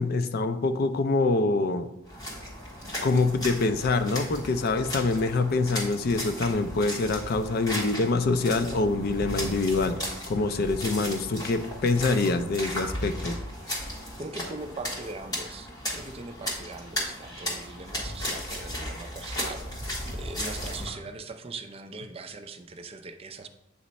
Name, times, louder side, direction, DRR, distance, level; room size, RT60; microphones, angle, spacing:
voice 1, 0.0-1.9 3.0-10.0 10.3-13.4, left 3 dB, 50° left, 9 dB, 0.4 m, -25 dB
sound 1, 2.1-20.9, equal, 20° left, 1.6 m, -35 dB
voice 2, 14.2-19.8 20.1-23.5, right 3 dB, 30° right, 7 dB, 0.4 m, -41 dB
8.2 x 3.1 x 4.0 m, 0.85 s
head